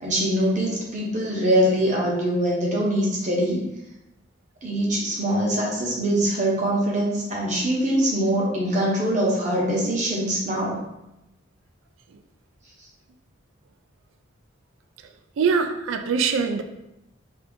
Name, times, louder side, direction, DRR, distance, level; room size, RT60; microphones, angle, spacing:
voice 1, 0.0-3.6 4.6-10.8, right 1 dB, 40° right, -4 dB, 0.8 m, -23 dB
voice 2, 15.4-16.6, right 5 dB, 85° right, 6 dB, 0.3 m, -22 dB
2.7 x 2.5 x 3.5 m, 0.90 s
head